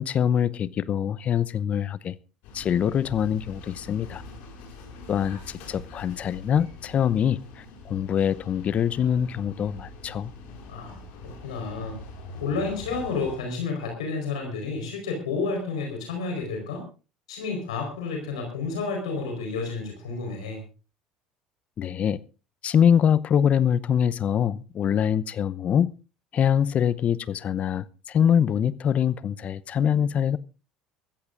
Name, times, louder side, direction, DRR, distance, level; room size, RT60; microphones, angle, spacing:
voice 1, 0.0-2.2 2.5-4.2 5.1-5.4 5.7-7.4 7.9-10.3 21.8-22.2 22.6-25.9 26.3-30.4, left 8 dB, 45° left, 0.8 m, -24 dB
sound 1, 2.4-13.4, left 2 dB, 70° left, 5.4 m, -44 dB
voice 2, 10.7-12.0 12.4-16.8 17.3-20.6, left 4 dB, 85° left, 4.5 m, -31 dB
23.5 x 14.5 x 2.6 m
hypercardioid pair, 70°, 3 cm